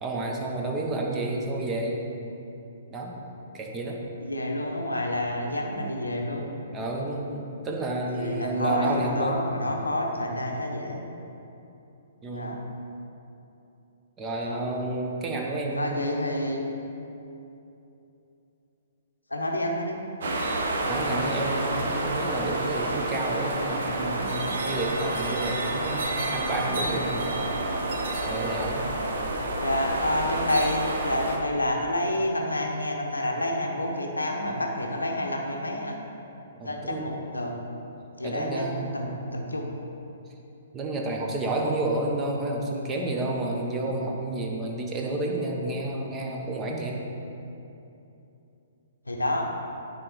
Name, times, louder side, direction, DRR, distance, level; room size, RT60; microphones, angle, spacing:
voice 1, 0.0-2.0 2.9-3.1 3.5-4.0 6.7-9.4 12.2-12.6 14.2-16.0 20.8-27.4 28.3-28.9 36.5-37.1 38.2-38.9 40.7-47.0, right 2 dB, 20° right, 0 dB, 1.0 m, -30 dB
voice 2, 4.2-6.5 8.1-11.0 12.3-12.6 14.4-14.6 15.8-16.6 19.3-20.0 29.6-36.0 36.6-37.5 38.2-39.7 49.1-49.4, left 1 dB, 85° left, 1 dB, 0.8 m, -29 dB
sound 1, 20.2-31.4, right 2 dB, 60° right, 0.8 m, -29 dB
9.9 x 3.9 x 4.5 m, 2.8 s
figure-of-eight pair, 120°, 0 cm